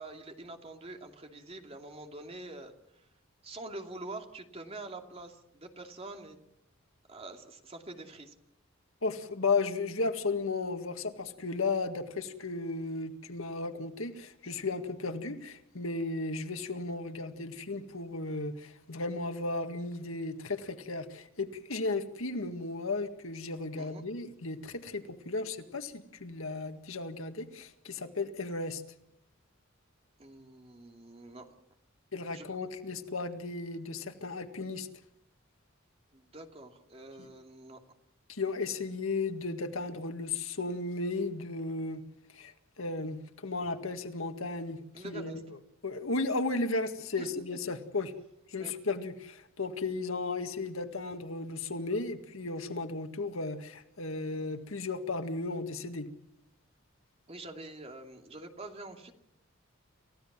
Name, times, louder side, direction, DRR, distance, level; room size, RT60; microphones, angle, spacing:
voice 1, 0.0-3.1 3.4-6.4 7.1-8.3 23.8-24.0 30.2-31.5 32.3-32.5 36.1-37.8 44.9-45.4 47.2-47.3 48.6-48.7 57.3-59.1, right 2 dB, 30° right, 4 dB, 2.6 m, -45 dB
voice 2, 9.0-28.8 32.1-34.9 37.2-37.3 38.3-42.0 42.3-44.8 45.0-45.6 45.8-48.1 48.5-56.1, left 3 dB, 85° left, 7 dB, 2.0 m, -35 dB
29.5 x 16.0 x 7.5 m, 0.78 s
head